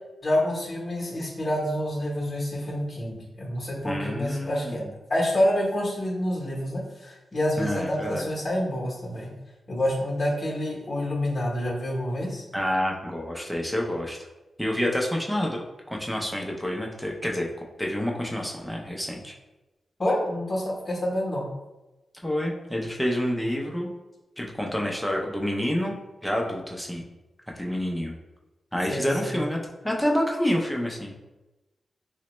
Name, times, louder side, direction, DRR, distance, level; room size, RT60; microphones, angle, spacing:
voice 1, 0.2-4.8 5.1-9.3 9.7-12.4 20.0-21.5 28.9-29.4, left 1 dB, 35° left, -3 dB, 0.8 m, -27 dB
voice 2, 3.8-4.9 7.6-8.2 12.5-14.2 14.6-15.6 15.9-17.5 17.8-19.3 22.2-23.9 24.4-26.0 26.2-27.0 27.6-28.1 28.7-29.6 29.8-31.1, equal, ahead, -1 dB, 0.5 m, -28 dB
4.0 x 2.1 x 2.9 m, 1.1 s
wide cardioid pair, 130°, 0 cm